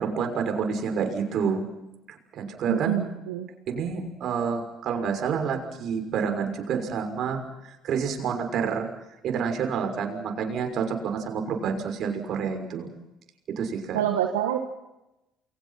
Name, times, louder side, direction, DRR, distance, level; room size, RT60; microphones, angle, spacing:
voice 1, 0.0-1.6 2.1-3.0 3.7-7.4 7.7-8.9 9.2-12.9 13.6-14.0, right 6 dB, 60° right, 5 dB, 6.2 m, -28 dB
voice 2, 2.7-3.5 13.9-14.7, right 10 dB, 90° right, 4 dB, 1.9 m, -26 dB
29.5 x 23.0 x 5.9 m, 0.95 s
hypercardioid pair, 65°, 0 cm